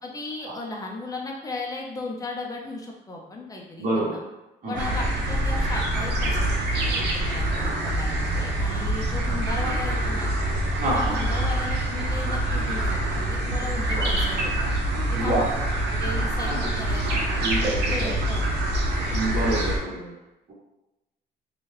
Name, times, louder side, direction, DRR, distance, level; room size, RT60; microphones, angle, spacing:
voice 1, 0.0-4.2 4.7-10.3 10.9-14.7 15.1-15.5 16.0-18.7 19.1-19.2, left 2 dB, 20° left, -1 dB, 0.6 m, -36 dB
voice 2, 3.8-4.2 4.6-4.9 10.8-11.2 13.9-14.1 15.2-15.4 16.4-16.7 17.4-18.2 19.1-20.1, right 2 dB, 50° right, -7 dB, 1.3 m, -27 dB
sound 1, 4.7-19.8, right 1 dB, 75° right, 0.7 m, -25 dB
2.7 x 2.4 x 3.2 m, 0.99 s
cardioid pair, 95°, 18 cm